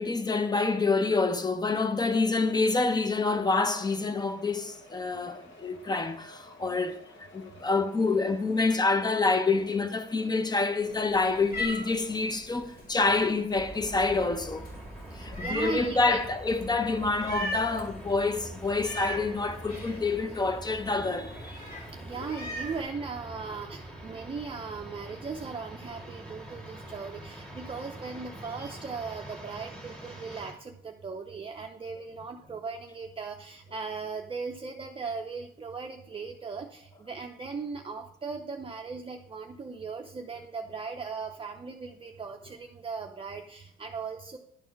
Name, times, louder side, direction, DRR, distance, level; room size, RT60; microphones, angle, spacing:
voice 1, 0.0-14.7 15.1-21.6, left 3 dB, 20° left, 0.8 m, -27 dB
sound 1, 3.6-12.3, left 1 dB, 75° left, 1.7 m, -53 dB
Meow, 10.8-22.8, equal, 50° left, 2.7 m, -41 dB
sound 2, 13.6-30.5, right 1 dB, 5° left, 2.0 m, -44 dB
voice 2, 15.1-16.2 22.0-44.4, right 5 dB, 25° right, 0.6 m, -38 dB
11.5 x 4.1 x 4.6 m
cardioid pair, 90°, 20 cm